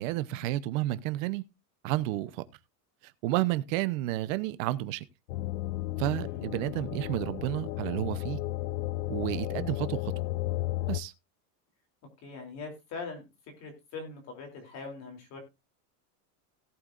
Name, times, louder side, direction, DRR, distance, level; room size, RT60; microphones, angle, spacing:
voice 1, 0.0-1.4 1.8-2.4 3.2-5.0 6.0-8.4 9.1-10.1 10.9-11.1, right 16 dB, 50° right, 0.9 m, -31 dB
sound 1, 5.3-11.0, left 16 dB, 65° left, 0.7 m, -33 dB
voice 2, 5.9-6.4 12.2-13.2 13.6-15.4, left 4 dB, 30° left, 3.3 m, -42 dB
17.5 x 7.9 x 2.5 m
supercardioid pair, 175°, 49 cm